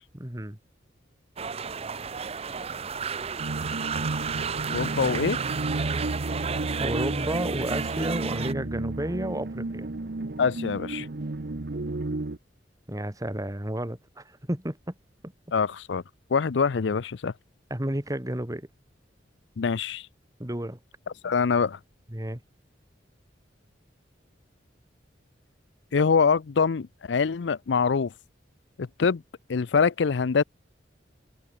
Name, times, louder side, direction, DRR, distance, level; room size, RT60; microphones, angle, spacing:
voice 1, 0.1-0.6 6.8-9.9 12.9-14.9 17.7-18.7 20.4-20.8 22.1-22.4, right 1 dB, 20° right, 2.1 m, -31 dB
sound 1, 1.4-8.5, right 6 dB, 35° right, 0.6 m, -32 dB
sound 2, 3.4-12.4, right 2 dB, 60° right, 0.9 m, -32 dB
voice 2, 4.7-5.4 10.4-11.1 15.5-16.0 16.3-17.3 19.6-20.1 21.2-21.8 25.9-28.1 28.8-29.2 29.5-30.4, left 5 dB, 70° left, 0.5 m, -24 dB
open air
head